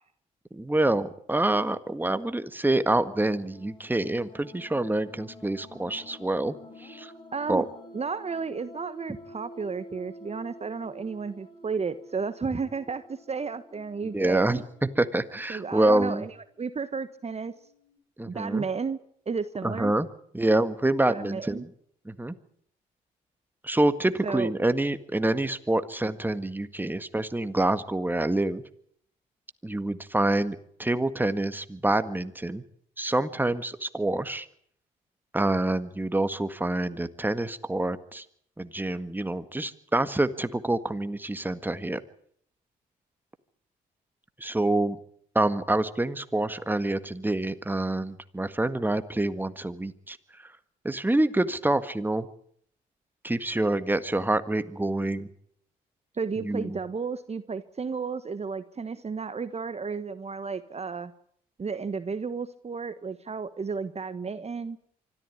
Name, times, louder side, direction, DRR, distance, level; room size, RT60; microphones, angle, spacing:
voice 1, 0.5-7.1 7.5-7.6 14.0-16.3 18.2-18.7 19.6-20.1 20.3-21.7 22.1-22.3 23.6-28.6 29.6-32.6 33.0-34.5 35.3-38.3 38.6-42.0 44.4-45.0 45.4-50.5 50.8-52.3 53.2-55.3 56.4-56.8, right 2 dB, 10° right, 11 dB, 1.7 m, -27 dB
sound 1, 3.1-18.0, left 1 dB, 25° left, 5.6 m, -50 dB
voice 2, 7.3-7.6 7.9-14.6 15.5-16.3 16.6-17.5 18.3-19.0 19.3-19.9 21.1-21.6 24.2-24.5 56.2-61.1 61.6-64.8, right 5 dB, 35° right, 12 dB, 1.3 m, -33 dB
25.0 x 13.5 x 9.6 m, 0.66 s
supercardioid pair, 60°, 19 cm